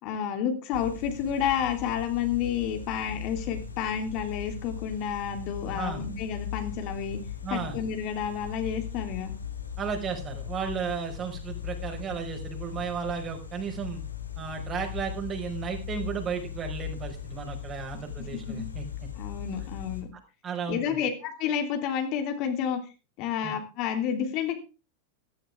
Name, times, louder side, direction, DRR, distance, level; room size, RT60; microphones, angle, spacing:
voice 1, 0.0-7.2 7.5-9.3 18.5-18.7 19.2-20.1 20.7-22.8 23.2-24.5, left 8 dB, 45° left, 6 dB, 3.1 m, -30 dB
sound 1, 0.7-20.0, left 8 dB, 85° left, 3.5 m, -38 dB
voice 2, 7.4-7.8 9.8-14.0 14.4-19.1 20.4-21.1 23.4-23.5, right 6 dB, 30° right, 4 dB, 5.4 m, -34 dB
15.0 x 14.0 x 3.5 m, 0.32 s
figure-of-eight pair, 90°, 0 cm